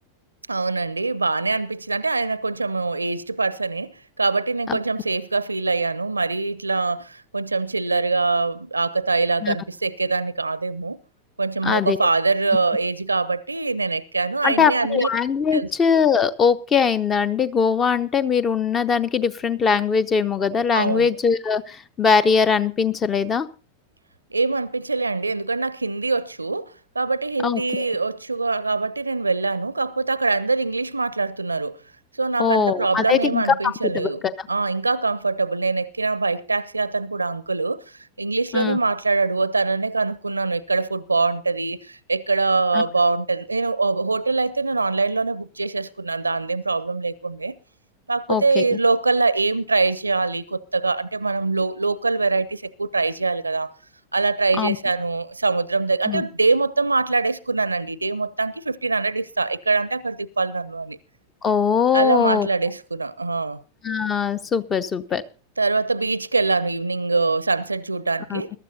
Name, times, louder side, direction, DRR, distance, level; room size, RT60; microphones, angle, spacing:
voice 1, 0.5-3.9 4.2-11.0 11.4-15.1 15.5-15.7 20.7-21.1 24.3-31.8 32.2-47.5 48.1-53.7 54.1-61.0 61.9-63.6 65.6-68.5, right 3 dB, 80° right, 0.5 m, -23 dB
voice 2, 11.6-12.0 14.4-23.5 27.4-27.9 32.4-33.4 33.8-34.1 38.5-38.8 42.7-42.8 48.3-48.6 54.6-54.8 56.1-56.2 61.4-62.5 63.8-65.2 68.3-68.4, left 6 dB, 20° left, 0.6 m, -21 dB
21.5 x 12.5 x 2.7 m
figure-of-eight pair, 90°, 0 cm